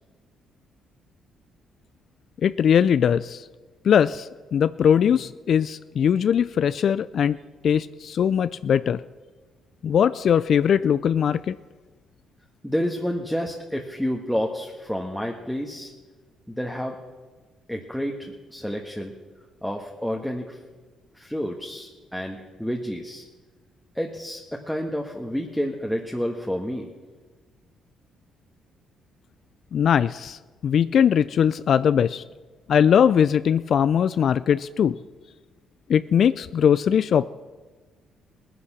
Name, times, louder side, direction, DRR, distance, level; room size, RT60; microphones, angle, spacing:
voice 1, 2.4-3.5 3.8-7.4 7.6-9.0 9.8-11.6 29.7-32.2 32.7-35.0 35.9-37.3, left 8 dB, 60° left, 15 dB, 0.3 m, -20 dB
voice 2, 12.6-15.9 16.5-17.0 17.7-19.1 19.6-20.6 21.1-23.2 23.9-26.9, equal, ahead, 0 dB, 1.4 m, -29 dB
18.0 x 10.0 x 6.0 m, 1.3 s
cardioid pair, 80°, 0 cm